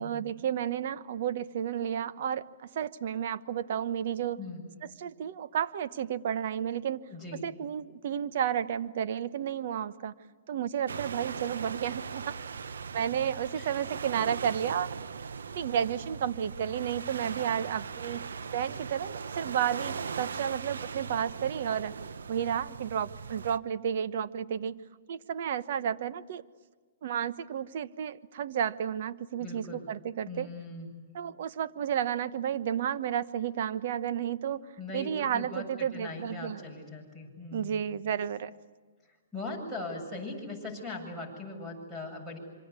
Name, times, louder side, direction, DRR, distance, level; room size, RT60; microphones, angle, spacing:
voice 1, 0.0-4.4 5.0-7.0 7.4-10.1 10.5-12.4 12.9-15.0 15.5-18.3 18.5-21.9 22.3-24.8 25.1-26.4 27.0-30.5 31.1-34.6 34.9-36.6 37.5-38.5, right 9 dB, 55° right, 13 dB, 1.1 m, -32 dB
voice 2, 7.1-7.5 13.5-13.7 29.4-29.8 30.3-31.0 34.8-37.9 39.0-42.4, left 2 dB, 5° right, 2 dB, 8.0 m, -40 dB
sound 1, 10.9-23.6, right 6 dB, 90° right, 0.9 m, -39 dB
27.0 x 25.5 x 8.3 m, 1.4 s
hypercardioid pair, 150°, 0 cm